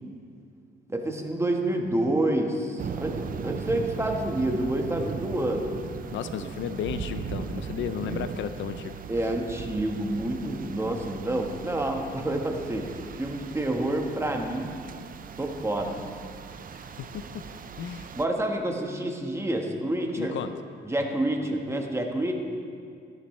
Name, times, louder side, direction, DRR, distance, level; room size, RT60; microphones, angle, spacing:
voice 1, 0.9-5.6 9.1-12.9 13.2-14.7 15.4-16.0 18.2-20.4 20.8-22.3, right 1 dB, 15° right, 2 dB, 1.4 m, -28 dB
sound 1, 2.8-18.2, right 6 dB, 45° right, 0.6 m, -38 dB
voice 2, 6.1-8.9 16.7-17.4 17.8-18.1 20.2-20.5, left 8 dB, 75° left, 10 dB, 0.5 m, -34 dB
14.0 x 10.5 x 3.2 m, 2.4 s
cardioid pair, 90°, 20 cm